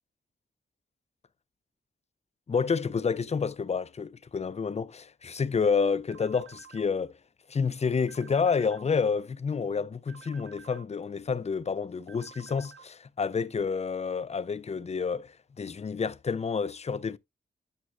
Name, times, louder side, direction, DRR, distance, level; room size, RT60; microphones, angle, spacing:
voice 1, 2.5-7.1 7.5-17.2, left 5 dB, 30° left, 0.4 m, -29 dB
sound 1, 6.1-6.9 8.1-8.9 10.1-10.9 12.1-12.9, right 7 dB, 75° right, 0.5 m, -51 dB
8.7 x 7.8 x 2.3 m
wide cardioid pair, 100°, 21 cm